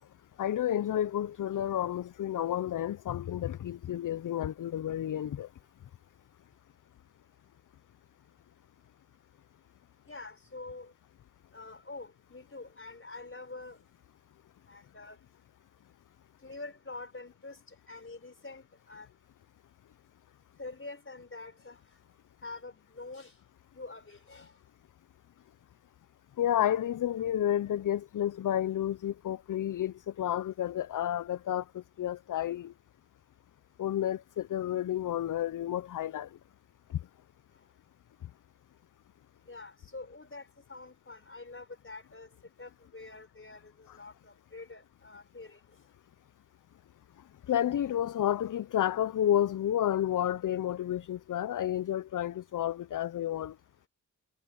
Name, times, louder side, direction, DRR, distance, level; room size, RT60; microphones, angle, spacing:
voice 1, 0.4-5.5 26.4-31.6 32.0-32.7 33.8-36.3 47.5-53.5, left 11 dB, 60° left, 0.5 m, -31 dB
voice 2, 10.1-10.9 11.5-13.8 14.6-15.2 16.4-19.1 20.6-21.8 22.4-23.3 23.7-24.5 39.5-42.3 42.6-45.6, left 3 dB, 35° left, 4.6 m, -46 dB
cardioid pair, 65°, 35 cm